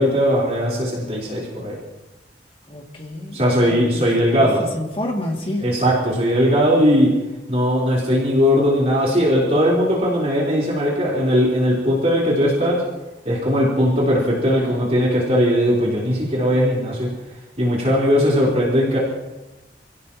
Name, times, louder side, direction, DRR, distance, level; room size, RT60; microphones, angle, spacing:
voice 1, 0.0-1.8 3.3-4.6 5.6-7.1 7.5-12.8 13.2-17.1 17.6-19.0, equal, 35° right, -5 dB, 4.0 m, -18 dB
voice 2, 2.7-4.0 4.4-5.7, left 1 dB, 30° left, 0 dB, 2.3 m, -29 dB
28.5 x 16.5 x 3.0 m, 1.0 s
head